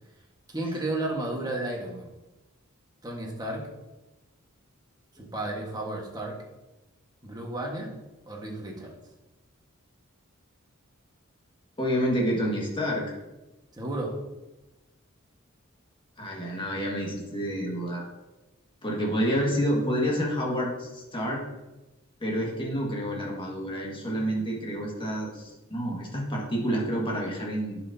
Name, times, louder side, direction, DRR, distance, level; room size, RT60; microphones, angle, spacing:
voice 1, 0.5-2.1 3.0-3.7 5.1-6.4 7.2-8.0 8.3-8.9 13.7-14.1, right 2 dB, 20° right, -1 dB, 1.4 m, -33 dB
voice 2, 11.8-13.0 16.2-18.0 18.8-21.4 22.2-27.8, equal, 25° left, -2 dB, 1.7 m, -28 dB
10.5 x 6.0 x 2.7 m, 1.0 s
head